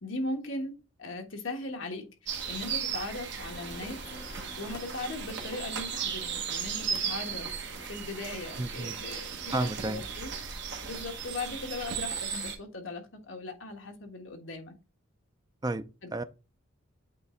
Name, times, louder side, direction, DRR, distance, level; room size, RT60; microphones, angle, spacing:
voice 1, 0.0-4.0 4.2-10.3 10.8-14.7 16.0-16.1, left 2 dB, 65° left, 1.4 m, -39 dB
sound 1, 2.3-12.6, right 6 dB, 55° right, 1.1 m, -36 dB
sound 2, 3.5-9.8, left 2 dB, 35° left, 0.9 m, -52 dB
voice 2, 8.6-9.0 9.5-10.0 15.6-15.9 16.1-16.2, right 2 dB, 20° right, 0.3 m, -31 dB
8.2 x 3.4 x 3.7 m
head